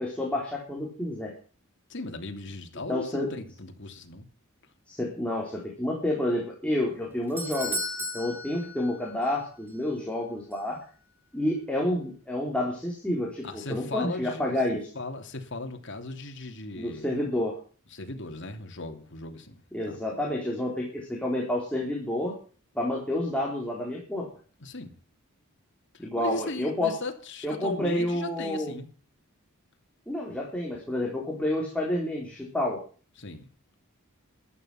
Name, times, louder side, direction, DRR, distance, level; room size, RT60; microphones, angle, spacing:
voice 1, 0.0-1.3 2.9-3.3 4.9-7.8 8.1-10.8 11.3-14.9 16.7-17.6 19.7-22.4 22.7-24.3 26.0-26.9 27.4-28.8 30.1-32.8, left 1 dB, 5° left, 3.9 m, -29 dB
voice 2, 1.9-4.3 13.4-14.6 14.9-17.2 17.9-20.0 24.6-25.0 25.9-28.9 33.2-33.5, left 2 dB, 60° left, 2.9 m, -37 dB
Doorbell, 6.9-9.4 9.7-9.8 10.5-10.6, left 1 dB, 10° right, 3.0 m, -35 dB
14.5 x 12.0 x 5.9 m
head